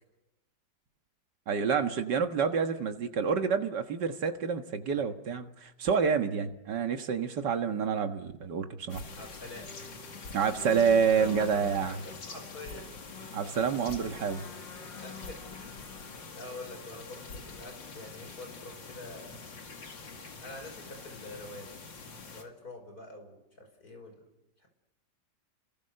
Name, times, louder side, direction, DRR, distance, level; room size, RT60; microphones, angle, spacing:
voice 1, 1.5-9.0 10.3-12.0 13.3-14.4, right 6 dB, 65° right, 6 dB, 2.1 m, -28 dB
sound 1, 8.9-22.4, left 4 dB, 80° left, 3.0 m, -44 dB
voice 2, 9.2-9.7 11.2-11.6 11.9-13.0 14.7-15.8 16.4-19.4 20.4-21.7 22.3-24.2 24.6-24.7, left 2 dB, 50° left, 4 dB, 6.0 m, -46 dB
29.5 x 22.0 x 6.6 m, 0.98 s
omnidirectional pair, 2.0 m